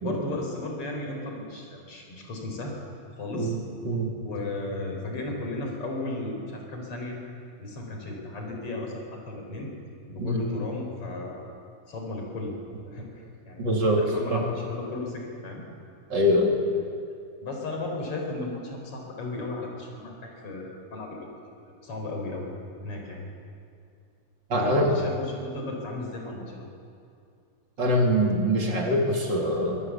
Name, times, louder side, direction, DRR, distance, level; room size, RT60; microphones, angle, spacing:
voice 1, 0.0-2.7 3.2-3.5 4.2-7.2 7.5-9.7 10.1-11.4 11.9-12.5 12.8-15.6 17.4-21.3 21.8-22.5 22.8-23.2 24.5-26.7, left 2 dB, 40° left, 1 dB, 4.7 m, -35 dB
voice 2, 13.6-14.0 14.3-14.4 16.1-16.6 24.5-24.9 27.8-29.8, equal, 35° right, -1 dB, 3.1 m, -23 dB
24.0 x 18.0 x 7.2 m, 2.4 s
omnidirectional pair, 4.0 m